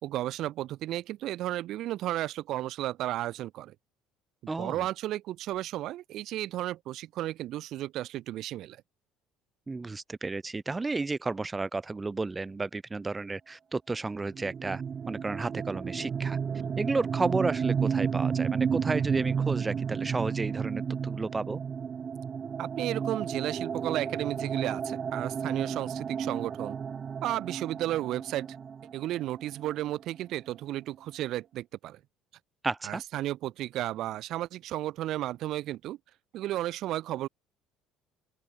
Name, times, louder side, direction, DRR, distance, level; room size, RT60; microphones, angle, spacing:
voice 1, 0.0-3.7 4.6-8.8 16.5-16.7 22.6-26.8 27.2-28.6 28.9-32.0 32.8-36.0 36.3-37.3, right 14 dB, 60° right, 3.1 m, -33 dB
voice 2, 4.5-4.9 9.7-16.4 16.8-21.6 32.6-33.0, right 3 dB, 20° right, 1.0 m, -32 dB
sound 1, 14.3-29.9, right 7 dB, 40° right, 2.6 m, -32 dB
open air
hypercardioid pair, 60°, 0 cm